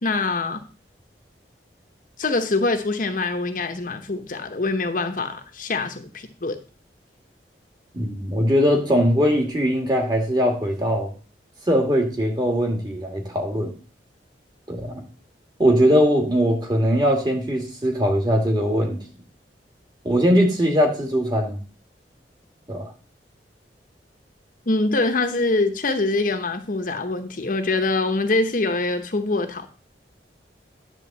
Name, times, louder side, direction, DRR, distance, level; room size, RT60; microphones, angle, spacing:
voice 1, 0.0-0.6 2.2-6.6 24.7-29.7, left 3 dB, 50° left, 0.9 m, -24 dB
voice 2, 7.9-11.1 11.7-13.7 14.7-15.0 15.6-19.0 20.0-21.6 22.7-22.9, equal, 25° right, 2.0 m, -20 dB
10.5 x 3.8 x 7.3 m
head